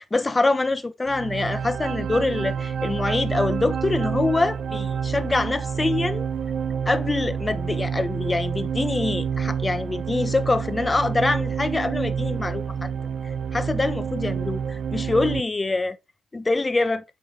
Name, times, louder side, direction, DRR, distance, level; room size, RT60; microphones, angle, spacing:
voice 1, 0.0-6.3 6.9-12.9 13.5-16.0 16.3-17.0, left 2 dB, 20° left, 1.0 m, -25 dB
sound 1, 1.1-15.4, right 7 dB, 60° right, 0.8 m, -28 dB
8.6 x 5.5 x 3.3 m
cardioid pair, 90°, 0 cm